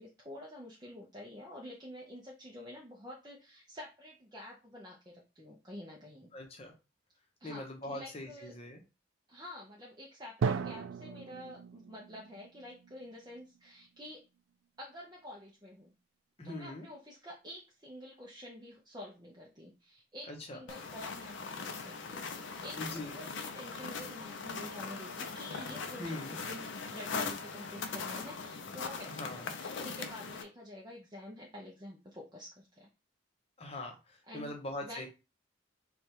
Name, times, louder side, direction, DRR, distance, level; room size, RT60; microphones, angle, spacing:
voice 1, 0.0-6.3 7.4-8.5 9.3-14.2 14.8-15.9 16.4-32.9 34.3-35.1, left 1 dB, 20° right, -3 dB, 0.6 m, -49 dB
voice 2, 6.3-6.7 7.4-8.8 16.4-16.9 20.3-20.6 22.8-23.2 26.0-26.4 29.1-29.5 33.6-35.1, left 1 dB, 30° left, 2 dB, 0.8 m, -42 dB
Drum, 10.4-14.1, right 5 dB, 75° right, 0.3 m, -38 dB
sound 1, 20.7-30.4, left 4 dB, 65° left, 0.5 m, -40 dB
3.3 x 2.3 x 4.3 m, 0.29 s
head